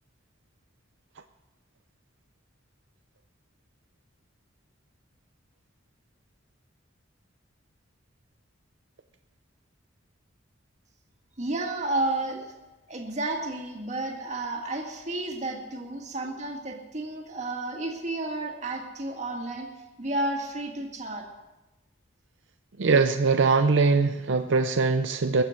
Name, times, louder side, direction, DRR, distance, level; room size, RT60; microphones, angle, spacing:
voice 1, 11.4-12.5 12.9-19.7 20.0-21.2, right 2 dB, 35° right, 0 dB, 1.8 m, -31 dB
voice 2, 22.8-25.4, right 4 dB, 65° right, 7 dB, 0.6 m, -22 dB
22.0 x 7.3 x 6.3 m, 1.1 s
head